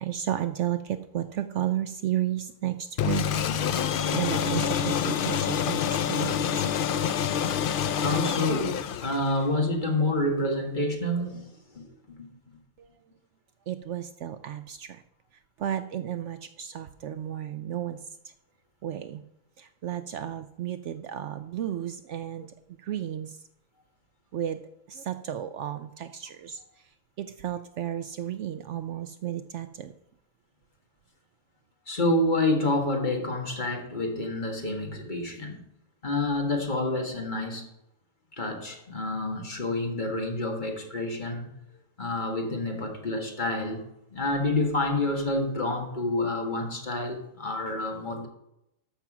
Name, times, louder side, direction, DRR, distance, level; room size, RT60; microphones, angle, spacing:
voice 1, 0.0-3.4 3.8-6.6 12.8-12.9 13.7-15.0 15.6-18.0 18.8-19.2 19.6-22.5 22.8-23.4 24.3-24.6 24.9-26.6 27.2-29.9, right 11 dB, 65° right, 11 dB, 0.8 m, -33 dB
sound 1, 3.0-9.5, left 8 dB, 65° left, 0.5 m, -27 dB
voice 2, 7.7-11.4 11.7-11.8 12.2-12.3 31.9-35.6 36.0-37.7 38.4-41.5 42.0-48.3, left 2 dB, 35° left, 2 dB, 1.8 m, -28 dB
13.0 x 5.9 x 6.0 m, 0.83 s
omnidirectional pair, 1.4 m